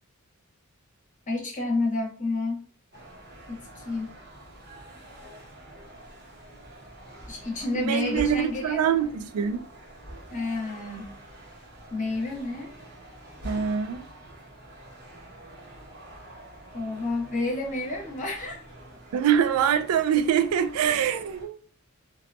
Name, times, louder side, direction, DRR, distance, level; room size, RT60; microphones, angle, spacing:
voice 1, 1.3-2.7 3.5-4.1 7.3-8.8 10.3-11.1 11.9-12.7 16.7-18.6, left 2 dB, 35° left, 0.8 m, -30 dB
sound 1, 2.9-21.5, right 1 dB, 50° right, 0.9 m, -46 dB
voice 2, 7.7-9.7 13.4-14.1 19.1-21.6, right 8 dB, 80° right, 0.3 m, -24 dB
2.6 x 2.2 x 2.5 m
head